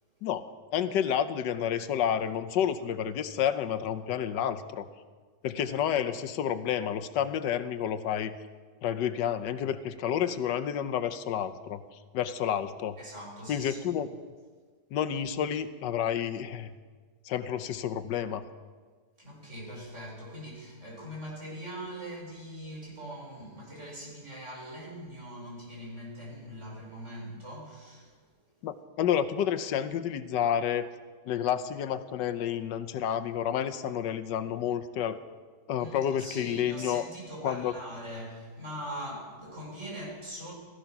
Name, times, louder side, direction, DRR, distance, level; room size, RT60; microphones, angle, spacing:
voice 1, 0.7-4.9 5.4-8.3 8.8-11.8 12.1-13.0 13.5-14.1 14.9-16.7 17.2-18.5 28.6-30.9 31.3-35.2 35.7-37.0 37.4-37.7, left 9 dB, 90° left, 10 dB, 1.4 m, -30 dB
voice 2, 13.0-13.8 19.2-28.2 35.8-40.5, equal, 40° right, -3 dB, 5.3 m, -42 dB
16.0 x 14.5 x 5.8 m, 1.5 s
omnidirectional pair, 1.9 m